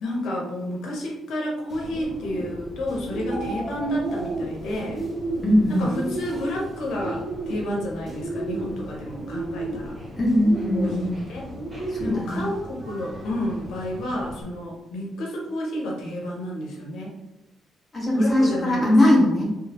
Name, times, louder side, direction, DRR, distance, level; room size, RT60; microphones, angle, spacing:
voice 1, 0.0-5.0 5.8-9.9 10.7-11.5 12.0-17.2 18.1-18.9, equal, 85° left, -1 dB, 0.9 m, -30 dB
Bird, 1.7-14.4, right 1 dB, 15° right, 1.5 m, -34 dB
sound 1, 3.2-4.4, right 1 dB, 35° right, 0.9 m, -35 dB
voice 2, 5.4-5.9 10.2-11.2 11.9-12.5 17.9-19.5, left 1 dB, 20° left, -5 dB, 1.4 m, -20 dB
3.8 x 3.2 x 2.9 m, 0.95 s
cardioid pair, 140°, 0 cm